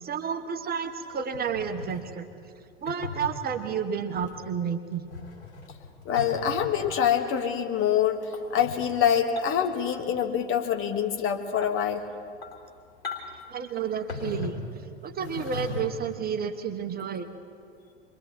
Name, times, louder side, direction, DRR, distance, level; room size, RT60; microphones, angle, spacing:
voice 1, 0.0-2.3 2.8-5.1 13.5-14.7 15.0-17.3, right 7 dB, 25° right, 7 dB, 1.2 m, -31 dB
sound 1, 1.3-2.1 2.9-3.3 4.2-4.4 5.0-7.1 8.2-8.8 9.4-9.7 10.0-10.5 10.8-10.9 11.4-11.8 12.3-12.7 13.0-13.5 14.1-14.7 15.2-16.1 17.0-17.2, left 4 dB, 80° left, 3.5 m, -38 dB
voice 2, 6.1-8.2 8.5-12.0, left 8 dB, 40° left, 5 dB, 2.0 m, -25 dB
27.0 x 23.0 x 4.6 m, 2.3 s
figure-of-eight pair, 80°, 33 cm